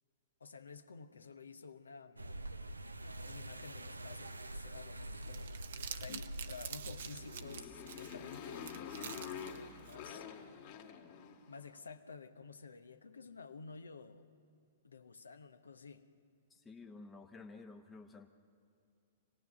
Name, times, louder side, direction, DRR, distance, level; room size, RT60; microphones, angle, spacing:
voice 1, 0.4-2.4 3.2-5.6 5.9-10.3 11.5-14.3 14.8-16.1, left 5 dB, 75° left, 9 dB, 0.9 m, -52 dB
sound 1, 2.2-7.6, right 1 dB, 85° right, 0.7 m, -46 dB
Crumpling crinkling, 5.0-10.1, right 8 dB, 60° right, 0.9 m, -49 dB
Motorcycle, 7.0-11.7, left 7 dB, 45° left, 1.9 m, -47 dB
voice 2, 16.5-18.3, left 3 dB, 15° left, 4 dB, 0.9 m, -52 dB
26.5 x 18.0 x 6.1 m, 2.6 s
figure-of-eight pair, 110°, 0 cm